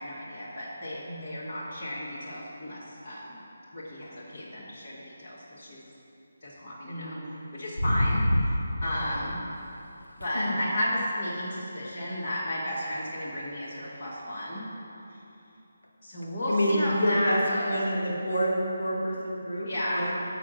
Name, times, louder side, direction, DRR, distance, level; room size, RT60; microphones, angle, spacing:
voice 1, 0.0-3.4 3.7-5.8 6.4-7.2 7.5-9.4 10.2-14.7 15.1-15.2 16.0-17.8 19.6-20.1, equal, 35° left, -8 dB, 1.5 m, -33 dB
voice 2, 1.0-1.5 6.8-7.3 7.9-8.1 8.9-9.3 10.3-10.6 16.5-20.1, equal, 75° left, -3 dB, 1.9 m, -29 dB
sound 1, 7.8-9.4 10.2-10.4 16.2-16.3, left 1 dB, 90° left, 0.6 m, -27 dB
6.0 x 6.0 x 6.3 m, 2.9 s
figure-of-eight pair, 150°, 0 cm